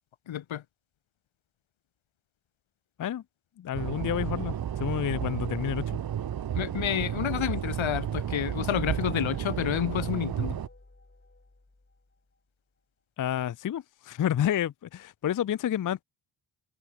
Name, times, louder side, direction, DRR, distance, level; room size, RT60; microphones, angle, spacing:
voice 1, 0.3-0.6 6.5-10.6, left 11 dB, 70° left, 0.9 m, -29 dB
voice 2, 3.6-6.0 13.2-16.0, left 10 dB, 45° left, 0.5 m, -30 dB
sound 1, 3.7-10.7, right 9 dB, 50° right, 0.7 m, -32 dB
sound 2, 8.6-12.4, left 2 dB, 25° left, 5.9 m, -53 dB
cardioid pair, 55°, 48 cm